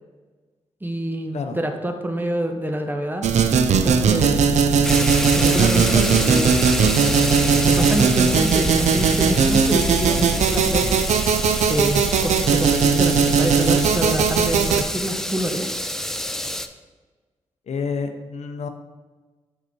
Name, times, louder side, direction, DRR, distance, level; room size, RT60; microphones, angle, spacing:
voice 1, 0.8-3.3 3.8-4.5 5.3-6.5 7.6-10.9 11.7-15.8, right 1 dB, 15° right, 5 dB, 1.0 m, -26 dB
sound 1, 3.2-14.8, right 6 dB, 65° right, 0.5 m, -19 dB
sound 2, 3.9-11.0, left 2 dB, 35° left, 1.4 m, -30 dB
sound 3, 4.8-16.7, equal, 5° left, 0.5 m, -28 dB
voice 2, 17.7-18.7, left 5 dB, 60° left, 6 dB, 0.6 m, -28 dB
5.5 x 4.9 x 4.6 m, 1.3 s
supercardioid pair, 40°, 13 cm